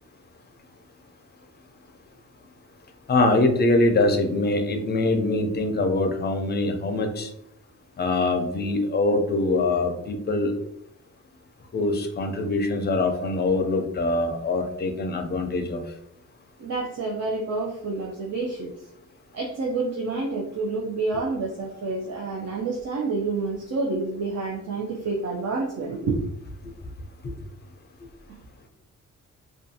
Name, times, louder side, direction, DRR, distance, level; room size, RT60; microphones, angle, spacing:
voice 1, 3.1-7.3 8.0-10.5 11.7-15.8, left 2 dB, 35° left, 5 dB, 0.4 m, -23 dB
voice 2, 16.6-18.7 19.3-26.2, right 3 dB, 55° right, -3 dB, 0.5 m, -28 dB
2.5 x 2.3 x 2.6 m, 0.75 s
wide cardioid pair, 115°, 31 cm